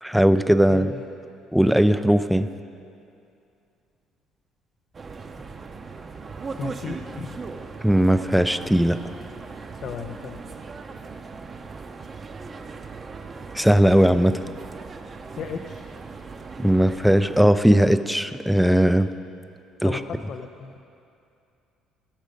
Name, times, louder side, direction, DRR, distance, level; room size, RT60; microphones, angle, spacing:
voice 1, 0.0-0.9 1.5-2.5 7.8-9.0 13.5-14.4 16.6-19.1 19.8-20.0, equal, ahead, 11 dB, 0.4 m, -18 dB
voice 2, 0.7-1.1 6.5-7.4 9.7-10.4 15.3-15.8 19.8-20.7, left 6 dB, 55° left, 5 dB, 0.6 m, -35 dB
sound 1, 4.9-17.5, right 4 dB, 30° right, 0.7 m, -38 dB
17.0 x 6.4 x 5.2 m, 2.6 s
cardioid pair, 115°, 0 cm